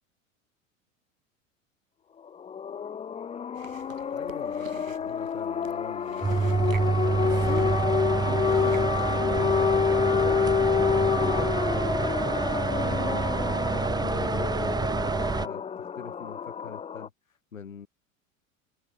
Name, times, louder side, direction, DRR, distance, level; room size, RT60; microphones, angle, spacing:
sound 1, 2.3-17.1, left 7 dB, 15° left, 0.8 m, -28 dB
Chewing mastication, 3.5-9.6, right 7 dB, 75° right, 5.6 m, -48 dB
voice 1, 4.1-6.6 7.2-7.9 8.2-11.9 12.5-17.9, left 6 dB, 75° left, 5.4 m, -41 dB
sound 2, 6.2-15.5, right 4 dB, 10° right, 1.0 m, -27 dB
figure-of-eight pair, 80°, 40 cm